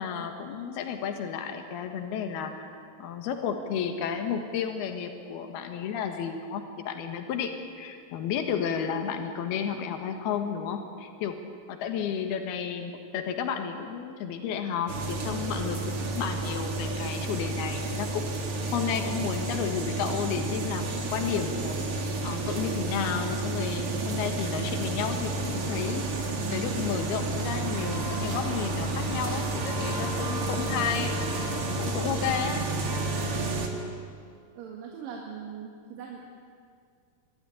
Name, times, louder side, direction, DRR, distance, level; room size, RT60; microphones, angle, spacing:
voice 1, 0.0-2.7 3.0-11.4 11.7-18.3 18.7-21.8 22.2-31.5 31.8-32.6, left 7 dB, 80° left, 6 dB, 3.4 m, -32 dB
sound 1, 14.9-33.7, right 2 dB, 40° right, 2.4 m, -31 dB
voice 2, 34.6-36.3, right 6 dB, 65° right, -1 dB, 3.4 m, -40 dB
22.5 x 13.5 x 10.0 m, 2.2 s
omnidirectional pair, 4.5 m